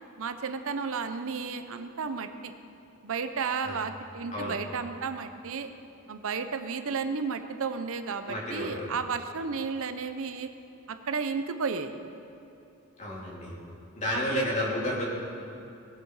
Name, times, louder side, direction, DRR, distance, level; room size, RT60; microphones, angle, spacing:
voice 1, 0.2-2.5 3.0-5.7 6.1-10.5 10.9-12.0 14.1-14.5, right 5 dB, 65° right, 9 dB, 0.6 m, -33 dB
voice 2, 8.3-8.9 13.0-13.6 14.0-15.0, left 1 dB, 35° left, -5 dB, 3.2 m, -31 dB
19.5 x 8.4 x 4.7 m, 2.8 s
head